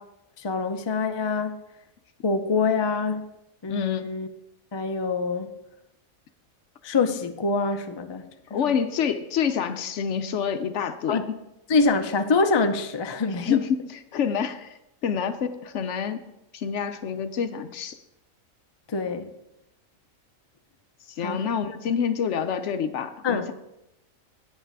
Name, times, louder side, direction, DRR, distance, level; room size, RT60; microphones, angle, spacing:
voice 1, 0.4-1.6 2.2-3.3 3.6-4.3 4.7-5.5 6.8-8.3 8.7-8.8 11.1-11.3 11.7-13.6 18.9-19.3 21.2-21.4 23.2-23.5, left 4 dB, 35° left, 7 dB, 0.4 m, -25 dB
voice 2, 3.7-4.1 8.5-11.2 13.4-14.7 15.0-16.2 16.5-18.0 21.2-23.5, left 7 dB, 65° left, 10 dB, 0.9 m, -27 dB
9.2 x 7.9 x 4.7 m, 0.88 s
omnidirectional pair, 1.4 m